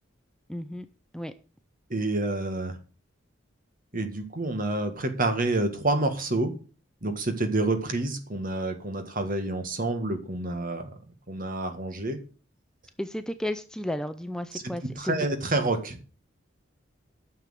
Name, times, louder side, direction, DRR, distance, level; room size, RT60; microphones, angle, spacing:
voice 1, 0.5-0.9 1.1-1.3 13.0-15.1, left 1 dB, 5° left, 10 dB, 0.5 m, -33 dB
voice 2, 1.9-2.8 3.9-6.5 7.0-11.0 11.3-12.2 14.5-16.0, right 2 dB, 45° right, 7 dB, 1.8 m, -28 dB
9.9 x 6.7 x 7.7 m, 0.38 s
head